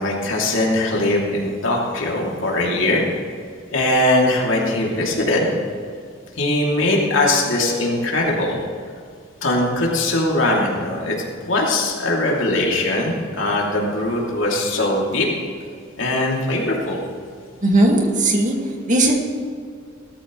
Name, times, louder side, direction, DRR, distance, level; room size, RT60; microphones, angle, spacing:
voice 1, 0.0-3.0 3.7-5.5 6.4-8.6 9.4-11.1 11.5-15.3 16.0-17.0, left 1 dB, 85° left, -2 dB, 2.9 m, -20 dB
voice 2, 17.6-18.6 18.9-19.1, right 1 dB, 40° right, 0 dB, 2.1 m, -17 dB
18.0 x 13.5 x 3.2 m, 2.3 s
head